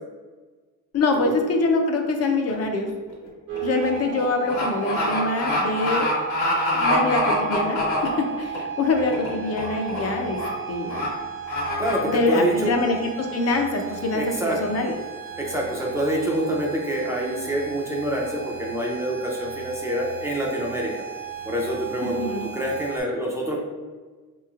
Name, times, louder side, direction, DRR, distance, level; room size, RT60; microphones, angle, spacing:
voice 1, 0.9-2.9 3.6-6.1 6.7-10.4 10.7-11.1 12.0-14.9 22.2-22.5, left 3 dB, 50° left, 4 dB, 0.5 m, -24 dB
sound 1, 2.5-2.7 3.1-8.6 9.0-9.3 9.6-10.1 10.3-10.5 10.9-11.1 11.5-12.0, left 1 dB, 70° left, 1.5 m, -25 dB
sound 2, 3.5-23.0, right 8 dB, 75° right, 0.9 m, -35 dB
voice 2, 11.8-12.7 14.1-14.6 15.4-20.9 21.4-23.6, right 1 dB, 10° right, -2 dB, 0.4 m, -26 dB
4.8 x 3.1 x 2.3 m, 1.4 s
cardioid pair, 160°, 32 cm